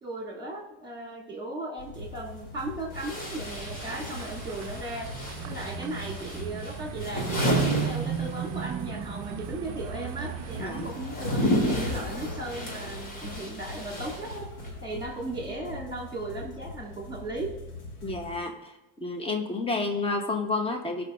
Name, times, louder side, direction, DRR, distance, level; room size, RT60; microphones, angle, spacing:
voice 1, 0.0-5.1 5.4-14.5 14.8-17.5, right 2 dB, 10° right, -3 dB, 2.7 m, -36 dB
sound 1, 1.8-18.4, left 2 dB, 70° left, 3.5 m, -43 dB
sound 2, 2.0-2.1 2.9-8.7 9.0-14.8, equal, 45° left, 3.0 m, -32 dB
sound 3, 3.4-10.9, right 9 dB, 40° right, 0.6 m, -35 dB
voice 2, 10.6-10.9 18.0-18.7 19.0-21.0, left 3 dB, 10° left, 3 dB, 1.1 m, -30 dB
17.0 x 6.0 x 2.6 m, 0.97 s
cardioid pair, 115°, 46 cm